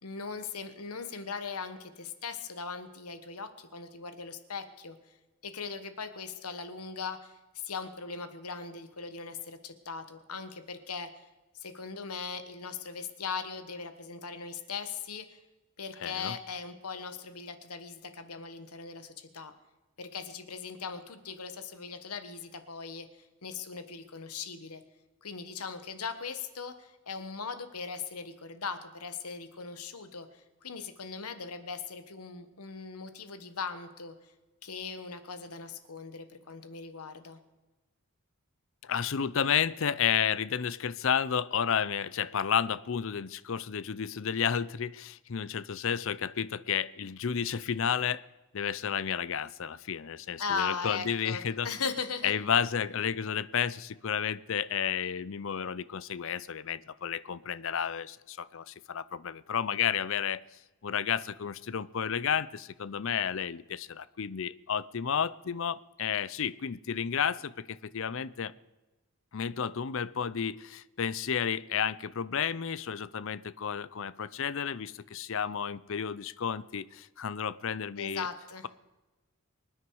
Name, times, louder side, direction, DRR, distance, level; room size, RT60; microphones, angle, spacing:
voice 1, 0.0-5.0 5.4-11.2 11.5-15.4 15.8-19.5 20.0-23.1 23.4-24.8 25.2-34.1 34.6-37.4 50.4-52.3 78.0-78.7, left 5 dB, 85° left, 9 dB, 1.4 m, -39 dB
voice 2, 16.0-16.3 38.8-48.2 48.5-51.7 52.2-60.4 60.8-68.5 69.3-78.3, left 7 dB, 60° left, 18 dB, 0.5 m, -31 dB
24.5 x 9.9 x 4.8 m, 1.1 s
head